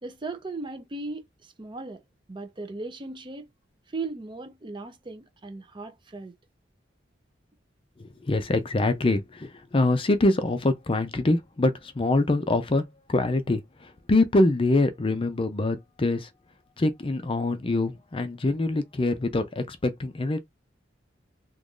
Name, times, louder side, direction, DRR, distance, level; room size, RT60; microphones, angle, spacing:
voice 1, 0.0-2.0 2.3-3.5 3.9-6.4, right 3 dB, 25° right, 0.6 m, -37 dB
voice 2, 8.0-16.3 16.8-20.4, left 2 dB, 30° left, 0.5 m, -24 dB
3.0 x 2.5 x 3.6 m
head